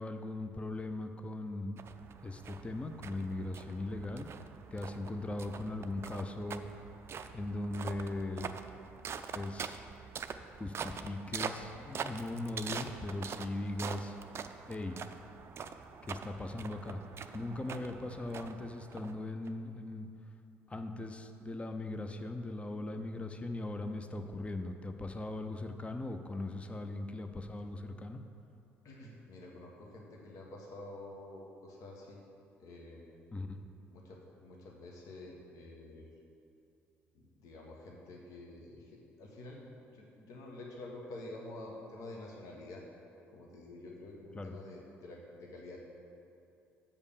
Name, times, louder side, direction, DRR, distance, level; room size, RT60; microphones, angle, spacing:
voice 1, 0.0-1.8 2.2-4.3 4.7-6.7 7.3-8.5 9.3-9.8 10.6-14.1 14.7-15.0 16.1-17.0 17.3-20.1 20.7-28.2 33.3-33.6 44.3-44.5, left 2 dB, 20° left, 7 dB, 0.6 m, -39 dB
sound 1, 1.8-19.5, right 6 dB, 40° right, 0.4 m, -44 dB
voice 2, 28.8-32.2 32.6-33.1 33.9-36.1 37.1-39.6 39.9-42.8 43.3-45.8, left 2 dB, 55° left, -1 dB, 1.3 m, -48 dB
7.2 x 5.3 x 6.6 m, 2.6 s
figure-of-eight pair, 50°, 7 cm